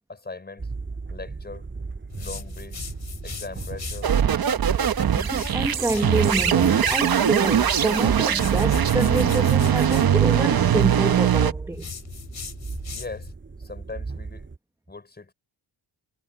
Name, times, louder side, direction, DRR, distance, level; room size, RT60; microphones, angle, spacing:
voice 1, 0.1-0.7 1.1-1.7 2.1-2.9 3.2-4.1 12.9-13.3 13.6-14.5 14.9-15.3, left 3 dB, 20° left, 5.7 m, -39 dB
sound 1, 0.6-14.6, right 4 dB, 25° right, 7.8 m, -37 dB
sound 2, 2.1-4.1 5.2-7.1 8.2-10.1 11.7-13.3, left 5 dB, 35° left, 5.0 m, -38 dB
sound 3, 4.0-11.5, right 9 dB, 45° right, 1.1 m, -21 dB
voice 2, 5.1-11.9, right 2 dB, 5° right, 0.9 m, -27 dB
wide cardioid pair, 175°, 49 cm